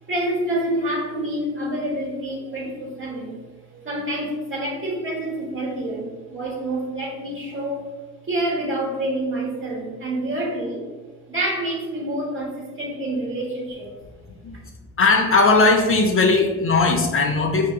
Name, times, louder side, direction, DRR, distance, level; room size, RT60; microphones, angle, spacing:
voice 1, 0.1-3.5 3.7-7.9 8.3-10.8 11.3-13.9, right 1 dB, 40° right, -3 dB, 1.4 m, -27 dB
voice 2, 15.0-17.7, left 3 dB, 40° left, 2 dB, 0.6 m, -18 dB
5.0 x 2.8 x 2.3 m, 1.3 s
supercardioid pair, 60°, 32 cm